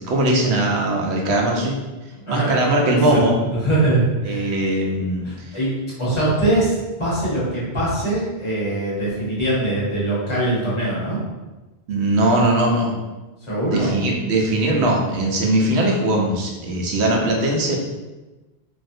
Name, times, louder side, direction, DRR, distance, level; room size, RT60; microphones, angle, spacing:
voice 1, 0.0-1.8 2.3-3.4 4.2-5.6 11.9-12.9 13.7-17.8, right 1 dB, 90° right, 0 dB, 0.9 m, -20 dB
voice 2, 2.1-2.5 2.9-3.2 3.5-4.5 5.2-5.7 6.0-11.2 13.5-13.9, right 1 dB, 30° left, -9 dB, 1.2 m, -22 dB
3.1 x 2.5 x 2.7 m, 1.1 s
omnidirectional pair, 1.1 m